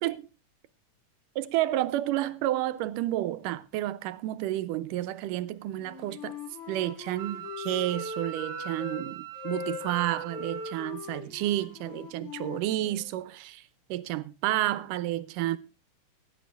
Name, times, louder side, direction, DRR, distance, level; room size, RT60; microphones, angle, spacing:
voice 1, 1.4-6.4 6.7-13.6 13.9-15.6, right 14 dB, 85° right, 2.3 m, -30 dB
Wind instrument woodwind instrument, 5.8-9.0 9.3-13.1, left 4 dB, 65° left, 4.0 m, -40 dB
Wind instrument woodwind instrument 2, 7.2-10.9, right 13 dB, 65° right, 1.4 m, -41 dB
16.5 x 10.0 x 3.3 m
omnidirectional pair, 3.6 m